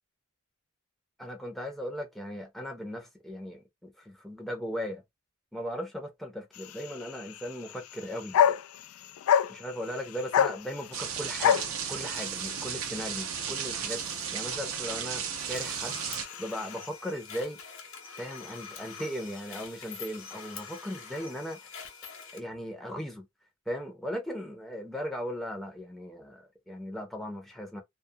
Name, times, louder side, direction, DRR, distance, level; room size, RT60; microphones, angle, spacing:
voice 1, 1.2-5.0 5.5-8.5 9.5-14.0 14.3-15.2 15.5-16.0 16.4-17.6 18.2-21.7 22.3-23.3 23.7-27.8, equal, ahead, 0.6 m, -37 dB
sound 1, 6.5-16.9, left 8 dB, 85° left, 0.3 m, -31 dB
sound 2, 10.9-16.3, right 8 dB, 70° right, 0.6 m, -34 dB
sound 3, 15.5-22.4, left 6 dB, 70° left, 0.8 m, -45 dB
2.3 x 2.1 x 2.6 m
head